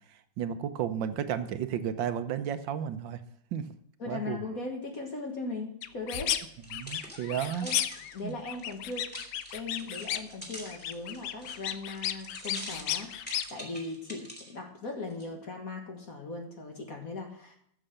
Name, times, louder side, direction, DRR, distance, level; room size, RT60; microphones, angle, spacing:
voice 1, 0.4-3.2 3.5-3.7 4.1-4.4 6.7-7.7 8.2-8.3, right 9 dB, 75° right, 10 dB, 1.5 m, -32 dB
voice 2, 4.0-6.4 7.0-7.2 7.6-7.8 8.1-9.1 9.5-17.6, left 3 dB, 50° left, 1 dB, 1.9 m, -39 dB
sound 1, 5.8-6.4 6.7-8.1 8.4-10.4 10.7-13.5, left 11 dB, 70° left, 1.2 m, -33 dB
sound 2, 6.5-14.5 15.1-15.2, equal, 5° left, 2.7 m, -46 dB
14.0 x 6.7 x 6.5 m, 0.69 s
omnidirectional pair, 2.1 m